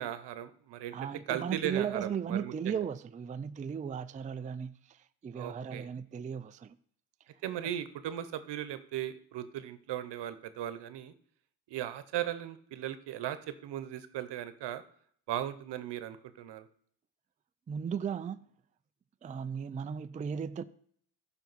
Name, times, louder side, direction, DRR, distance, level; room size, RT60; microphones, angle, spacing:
voice 1, 0.0-0.9 1.3-2.8 5.3-5.9 7.4-11.1 11.7-14.8 15.3-16.7, right 11 dB, 85° right, 0.9 m, -37 dB
voice 2, 0.9-6.8 17.7-18.4 19.2-20.6, right 7 dB, 20° right, 0.3 m, -36 dB
14.5 x 5.8 x 4.1 m
cardioid pair, 120°, 40 cm